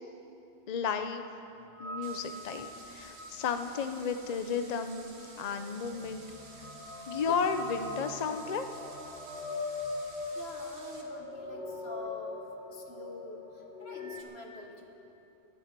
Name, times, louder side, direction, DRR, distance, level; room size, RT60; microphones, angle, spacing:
voice 1, 0.7-1.3 1.8-6.2 7.1-8.6, left 6 dB, 45° left, 8 dB, 0.7 m, -33 dB
sound 1, 1.7-14.2, left 2 dB, 85° left, 2.2 m, -42 dB
sound 2, 2.0-11.0, right 3 dB, 75° right, 1.6 m, -53 dB
voice 2, 10.3-15.0, left 2 dB, 70° left, 3 dB, 1.7 m, -47 dB
16.5 x 11.5 x 6.0 m, 2.8 s
omnidirectional pair, 1.1 m